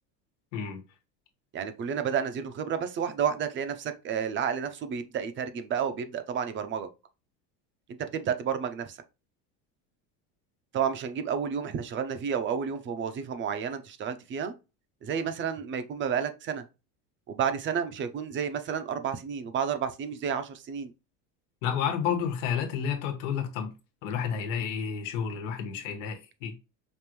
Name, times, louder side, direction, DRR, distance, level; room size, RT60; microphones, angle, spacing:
voice 1, 0.5-0.8 21.6-23.7 24.0-26.6, left 7 dB, 90° left, 1.3 m, -30 dB
voice 2, 1.5-6.9 8.1-9.0 10.7-14.5 15.0-16.6 17.3-20.9, right 7 dB, 30° right, 0.6 m, -31 dB
5.2 x 2.5 x 3.1 m
cardioid pair, 140°, 37 cm